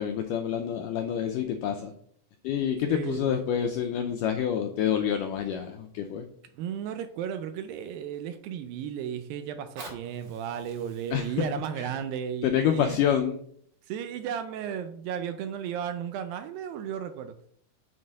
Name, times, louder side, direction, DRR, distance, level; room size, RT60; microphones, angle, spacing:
voice 1, 0.0-1.9 2.4-6.3 11.1-11.4 11.8-11.9 12.4-13.4, left 9 dB, 85° left, 5 dB, 1.9 m, -27 dB
voice 2, 2.9-3.3 6.6-13.0 13.8-17.4, right 8 dB, 80° right, 9 dB, 2.1 m, -34 dB
Fire, 9.6-14.5 15.1-15.2, right 3 dB, 50° right, 2.4 m, -50 dB
7.3 x 4.0 x 6.4 m, 0.63 s
omnidirectional pair, 4.4 m